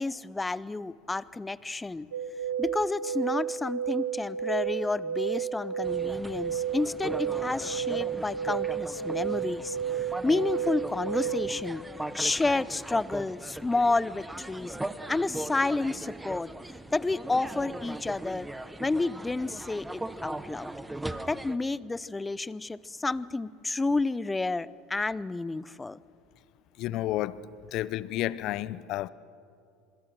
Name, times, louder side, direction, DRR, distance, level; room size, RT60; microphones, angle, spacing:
voice 1, 0.0-2.1 2.6-11.8 12.1-14.8 15.1-16.5 16.9-18.5 18.8-20.7 21.3-26.0, left 3 dB, 15° left, 0.6 m, -30 dB
sound 1, 2.1-11.6, right 8 dB, 80° right, 1.1 m, -32 dB
sound 2, 5.8-21.6, right 1 dB, 10° right, 1.1 m, -39 dB
voice 2, 26.8-27.4 27.7-29.1, left 14 dB, 55° left, 0.7 m, -31 dB
26.5 x 23.0 x 6.2 m
hypercardioid pair, 70°, 0 cm